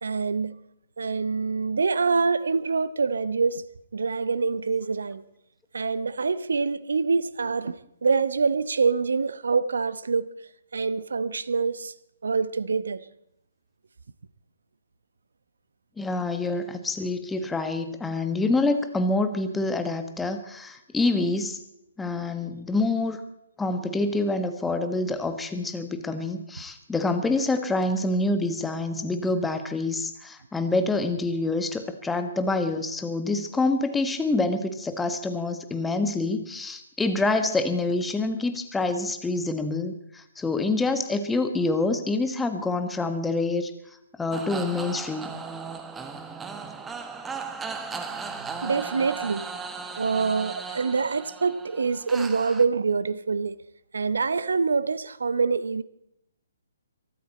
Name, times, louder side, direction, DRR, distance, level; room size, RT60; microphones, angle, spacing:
voice 1, 0.0-0.6 1.0-3.6 3.9-5.2 5.7-10.3 10.7-11.9 12.2-13.0 48.6-49.5 50.0-53.6 53.9-55.8, right 4 dB, 70° right, 0.9 m, -25 dB
voice 2, 16.0-21.6 22.0-23.2 23.6-43.7 44.2-45.4, left 2 dB, 5° left, 1.4 m, -26 dB
sound 1, 44.3-52.6, right 5 dB, 10° right, 1.3 m, -37 dB
23.5 x 12.5 x 4.3 m
figure-of-eight pair, 130°, 0 cm